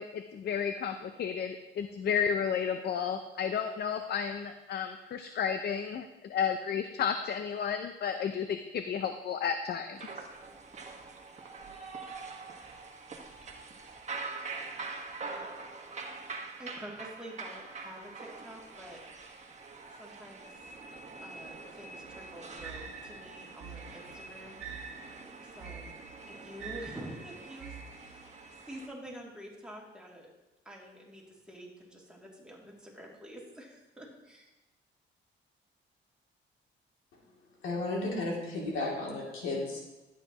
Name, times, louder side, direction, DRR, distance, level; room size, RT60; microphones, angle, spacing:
voice 1, 0.0-10.0, left 7 dB, 55° left, 8 dB, 0.6 m, -32 dB
sound 1, 9.9-28.9, right 4 dB, 35° right, 1.4 m, -44 dB
voice 2, 16.6-19.0 20.0-20.5 21.2-24.6 25.5-25.9 26.3-30.3 30.6-34.5, equal, 5° right, -3 dB, 2.6 m, -48 dB
sound 2, 22.0-28.4, right 6 dB, 80° right, 1.4 m, -46 dB
voice 3, 37.6-39.8, left 2 dB, 90° left, -3 dB, 2.7 m, -33 dB
12.0 x 8.4 x 3.0 m, 1.0 s
cardioid pair, 90°, 20 cm